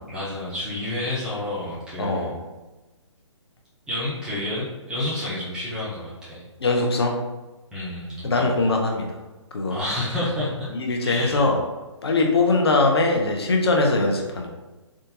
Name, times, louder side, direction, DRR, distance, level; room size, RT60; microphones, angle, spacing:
voice 1, 0.1-2.3 3.9-6.4 7.7-8.5 9.7-10.7 11.0-11.5, left 1 dB, 5° right, -9 dB, 0.4 m, -29 dB
voice 2, 2.0-2.4 6.6-7.2 8.2-9.1 9.5-9.8 10.7-11.6 12.0-14.5, left 3 dB, 55° left, 2 dB, 0.6 m, -21 dB
3.5 x 2.5 x 2.5 m, 1.2 s
figure-of-eight pair, 135°, 16 cm